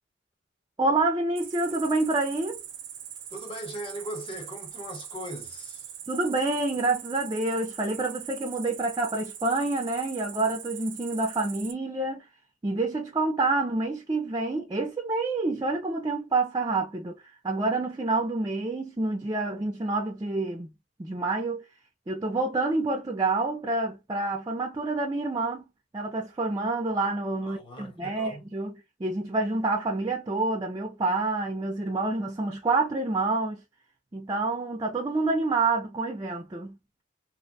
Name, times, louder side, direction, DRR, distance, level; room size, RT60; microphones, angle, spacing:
voice 1, 0.8-2.6 6.1-12.3 12.6-20.7 21.0-21.6 22.1-25.6 25.9-33.6 34.1-36.8, right 3 dB, 20° right, 0.4 m, -28 dB
Cricket, 1.4-11.7, right 10 dB, 75° right, 0.5 m, -42 dB
voice 2, 3.3-5.9 27.4-28.4, equal, 30° left, 0.8 m, -39 dB
2.5 x 2.1 x 2.6 m
head